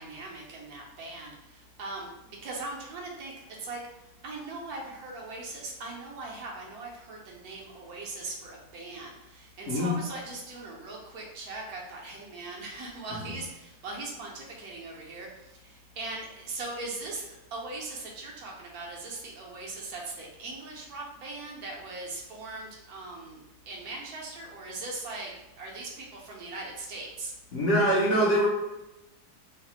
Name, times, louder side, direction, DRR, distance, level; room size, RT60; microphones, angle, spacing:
voice 1, 0.0-3.3 3.6-3.8 4.2-25.3 25.6-27.3, right 3 dB, 70° right, -2 dB, 1.1 m, -40 dB
voice 2, 27.5-28.5, equal, 60° left, -5 dB, 0.9 m, -23 dB
3.2 x 2.0 x 2.8 m, 0.98 s
omnidirectional pair, 1.7 m